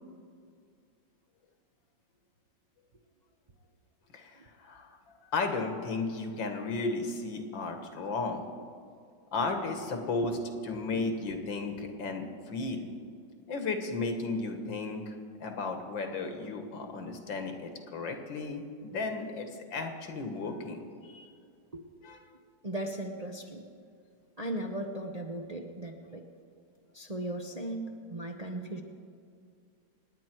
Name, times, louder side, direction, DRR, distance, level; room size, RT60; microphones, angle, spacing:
voice 1, 4.1-8.4 9.3-12.9 13.5-15.1 15.4-21.3 22.0-22.2, left 3 dB, 85° left, 5 dB, 2.2 m, -34 dB
voice 2, 22.6-23.6 24.4-26.2 26.9-28.8, right 1 dB, 30° right, 1 dB, 0.7 m, -37 dB
27.5 x 9.7 x 4.6 m, 2.3 s
omnidirectional pair, 2.0 m